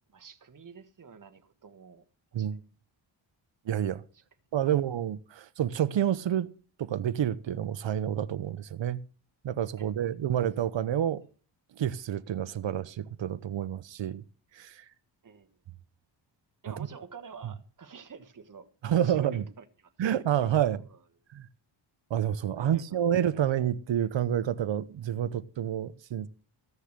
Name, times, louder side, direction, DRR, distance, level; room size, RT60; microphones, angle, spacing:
voice 1, 0.1-2.0 2.4-2.5 4.1-4.2 4.6-4.7 9.8-9.9 15.2-15.5 16.6-21.0 22.5-22.8 23.1-23.3, right 6 dB, 40° right, 1.4 m, -49 dB
voice 2, 3.6-4.0 4.5-6.5 6.8-9.0 9.4-11.2 11.8-14.2 14.5-14.8 16.7-16.9 18.8-19.4 20.0-20.8 21.3-21.5 22.1-26.3, right 10 dB, 65° right, 0.8 m, -29 dB
15.0 x 6.5 x 6.6 m
cardioid pair, 100°, 49 cm